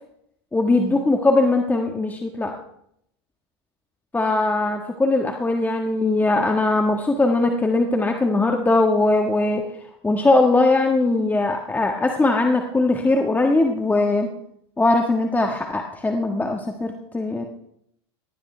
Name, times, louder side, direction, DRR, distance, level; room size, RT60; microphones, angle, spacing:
voice 1, 0.5-2.5 4.1-9.6 10.0-14.3 14.8-17.5, left 2 dB, 10° left, 3 dB, 1.6 m, -20 dB
19.0 x 15.0 x 3.4 m, 0.73 s
hypercardioid pair, 95°, 14 cm